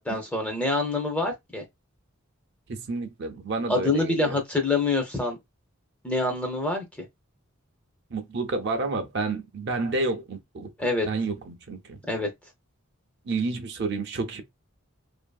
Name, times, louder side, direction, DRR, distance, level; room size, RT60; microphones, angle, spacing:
voice 1, 0.0-1.6 3.7-5.4 6.0-6.8 10.8-11.1 12.1-12.3, left 2 dB, 5° left, 0.5 m, -26 dB
voice 2, 2.7-4.4 8.1-10.7 11.1-12.0 13.3-14.4, right 3 dB, 50° right, 0.4 m, -30 dB
2.6 x 2.6 x 2.2 m
head